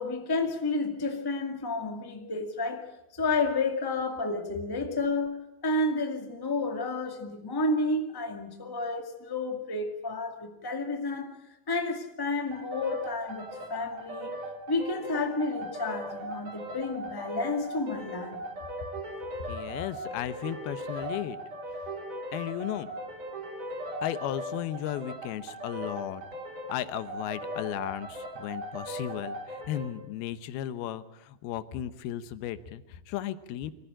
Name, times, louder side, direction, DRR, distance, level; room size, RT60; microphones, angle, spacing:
voice 1, 0.0-2.8 3.2-11.4 11.7-14.3 14.7-18.4, left 2 dB, 10° left, 1.1 m, -31 dB
sound 1, 12.5-29.9, right 1 dB, 55° right, 5.6 m, -38 dB
voice 2, 19.5-21.4 22.3-22.9 24.0-26.2 26.7-33.7, left 12 dB, 90° left, 2.9 m, -35 dB
24.5 x 15.0 x 8.9 m
omnidirectional pair, 4.3 m